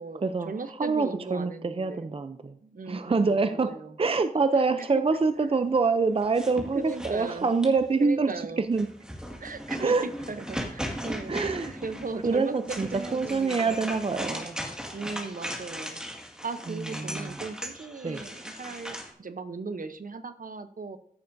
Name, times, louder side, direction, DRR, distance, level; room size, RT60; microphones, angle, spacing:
voice 1, 0.0-2.2 2.6-3.9 4.8-5.1 6.7-7.5 8.0-8.6 9.4-11.4 11.7-13.9 14.9-16.0 16.4-21.0, right 4 dB, 65° right, 10 dB, 0.8 m, -37 dB
voice 2, 0.8-2.6 2.9-8.9 9.8-10.0 11.3-11.7 12.2-14.6 16.7-17.3 18.0-18.2, right 4 dB, 40° right, 10 dB, 0.5 m, -26 dB
sound 1, 6.2-7.9 8.7-19.1, equal, 5° right, 1.9 m, -38 dB
14.5 x 6.9 x 2.6 m, 0.68 s
wide cardioid pair, 65°, 15 cm